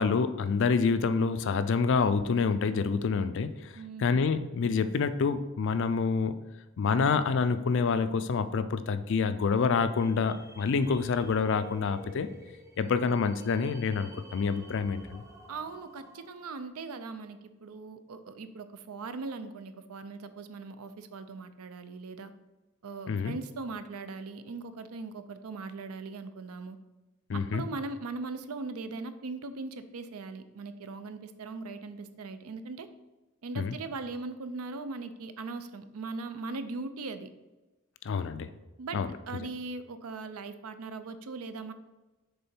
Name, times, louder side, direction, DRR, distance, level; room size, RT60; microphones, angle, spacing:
voice 1, 0.0-3.7 4.0-6.4 6.8-12.3 12.8-15.2 23.1-23.3 27.3-27.6 33.6-33.7 38.0-38.5 38.9-39.1, left 5 dB, 55° left, 12 dB, 0.4 m, -27 dB
voice 2, 3.8-4.3 15.5-22.3 22.8-26.8 27.3-32.9 33.4-37.3 38.8-39.0 39.3-41.7, right 3 dB, 75° right, 11 dB, 0.5 m, -39 dB
sound 1, 9.7-16.7, equal, 15° right, 0.5 m, -51 dB
6.8 x 3.7 x 4.4 m, 1.1 s
head